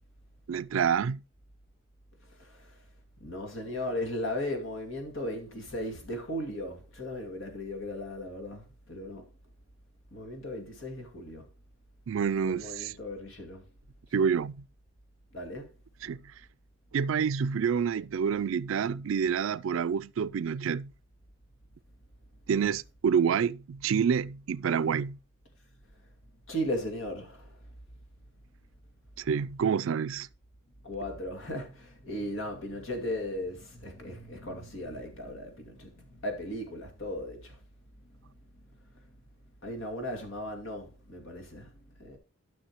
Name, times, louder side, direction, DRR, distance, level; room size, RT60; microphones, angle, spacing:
voice 1, 0.5-1.2 12.1-12.9 14.1-14.6 16.0-16.2 16.9-20.9 22.5-25.2 29.2-30.3, right 7 dB, 80° right, 0.4 m, -28 dB
voice 2, 2.3-2.8 3.2-9.3 10.1-11.5 12.4-13.6 14.2-14.3 15.3-15.7 26.5-27.6 30.8-37.6 38.0-38.2 39.6-41.7 42.0-42.2, left 1 dB, 75° left, 2.4 m, -37 dB
13.0 x 6.1 x 3.0 m
head